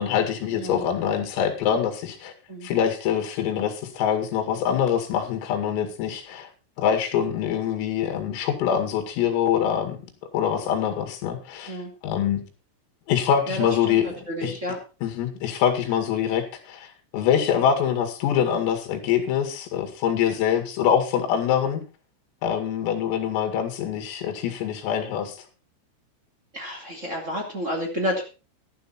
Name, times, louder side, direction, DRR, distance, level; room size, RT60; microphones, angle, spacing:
voice 1, 0.0-2.3 2.6-6.5 6.8-10.0 10.3-11.8 12.0-12.4 13.1-14.1 14.4-14.5 15.0-16.9 17.1-21.8 22.4-25.4, left 8 dB, 85° left, 4 dB, 4.8 m, -24 dB
voice 2, 13.5-14.0 14.3-14.8 26.5-28.2, equal, 25° right, 1 dB, 1.9 m, -30 dB
12.0 x 12.0 x 4.2 m, 0.32 s
omnidirectional pair, 5.9 m